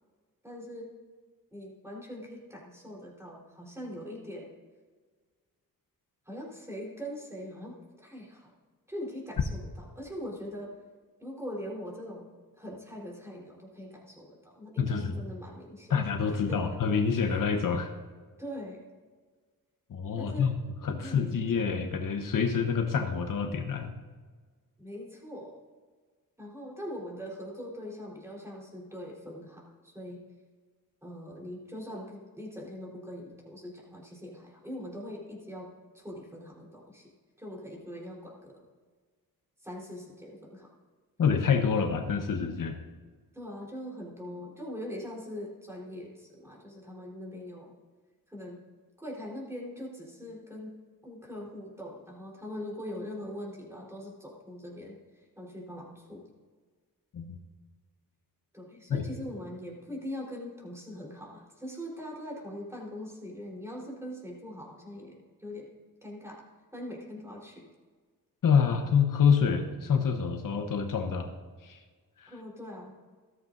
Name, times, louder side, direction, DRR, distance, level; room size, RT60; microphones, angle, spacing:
voice 1, 0.4-0.9 1.5-4.5 6.3-8.5 8.9-10.7 11.2-12.3 12.6-16.0 16.3-16.7 17.3-17.4 18.4-18.8 20.1-20.5 21.0-21.4 24.8-25.6 26.4-30.2 31.0-35.7 35.9-37.1 37.4-38.6 39.6-40.7 43.3-47.7 48.3-48.6 49.0-50.7 51.0-56.2 58.5-65.7 66.0-66.4 66.7-67.6 72.3-72.9, equal, 10° right, -3 dB, 4.0 m, -42 dB
voice 2, 14.8-15.1 15.9-17.9 19.9-20.5 20.8-23.9 41.2-42.8 57.1-57.4 58.9-59.0 68.4-71.3 71.6-71.8 72.2-72.3, left 6 dB, 65° left, 5 dB, 1.1 m, -27 dB
14.5 x 13.5 x 2.7 m, 1.5 s
wide cardioid pair, 105°, 35 cm